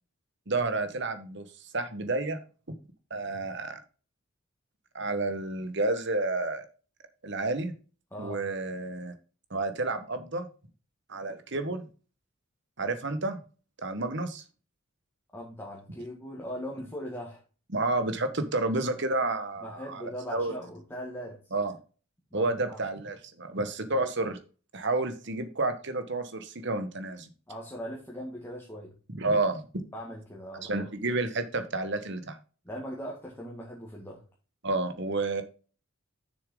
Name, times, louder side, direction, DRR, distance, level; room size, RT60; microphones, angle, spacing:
voice 1, 0.5-1.5 1.7-2.4 3.1-3.8 4.9-6.7 7.2-7.7 8.2-9.1 9.5-10.5 11.1-11.9 12.8-13.4 13.8-14.4 17.7-20.5 21.5-21.7 22.3-24.4 24.7-27.3 29.1-29.6 30.6-32.4 34.6-35.4, right 2 dB, 55° right, 9 dB, 1.3 m, -30 dB
voice 2, 8.1-8.4 15.3-17.4 19.6-21.4 22.3-22.8 27.5-28.9 29.9-30.9 32.6-34.2, equal, 10° left, -2 dB, 1.9 m, -40 dB
7.1 x 6.7 x 3.8 m, 0.35 s
head